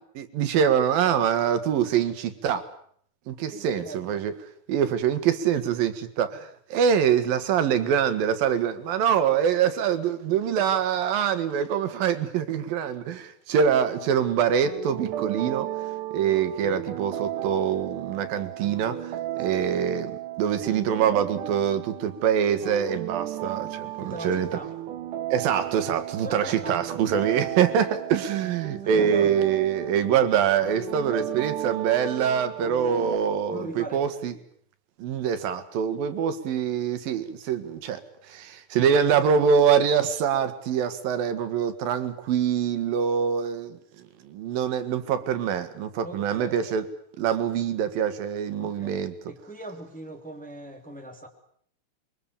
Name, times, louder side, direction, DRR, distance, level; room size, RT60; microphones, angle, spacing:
voice 1, 0.2-2.7 3.3-4.3 4.7-15.7 16.1-20.1 20.4-24.5 25.3-34.3 35.0-43.8 44.3-46.8 47.2-49.1, right 8 dB, 85° right, 10 dB, 3.4 m, -24 dB
voice 2, 3.5-4.2 24.0-24.7 26.2-26.8 28.4-29.3 33.5-34.4 46.0-46.7 48.6-49.0 49.3-51.3, right 2 dB, 5° left, 3 dB, 2.3 m, -40 dB
sound 1, 13.7-33.2, right 12 dB, 70° right, 2.7 m, -35 dB
27.0 x 23.0 x 7.0 m, 0.63 s
omnidirectional pair, 4.0 m